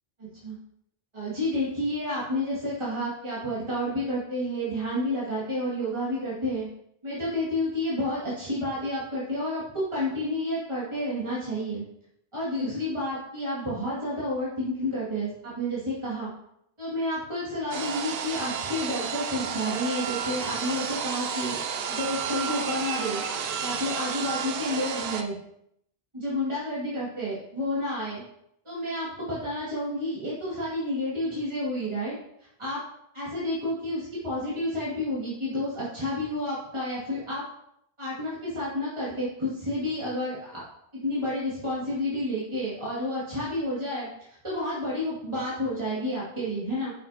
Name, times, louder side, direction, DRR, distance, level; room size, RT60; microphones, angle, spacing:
voice 1, 0.2-0.6 1.1-6.7 7.0-11.8 12.3-16.3 16.8-21.6 21.9-25.4 26.1-28.2 28.6-32.8 33.1-37.4 38.0-40.6 41.0-44.1 44.4-46.9, left 1 dB, 30° right, -9 dB, 2.4 m, -30 dB
sound 1, 17.7-25.2, right 7 dB, 70° right, 0.8 m, -31 dB
9.2 x 6.2 x 2.9 m, 0.74 s
omnidirectional pair, 1.1 m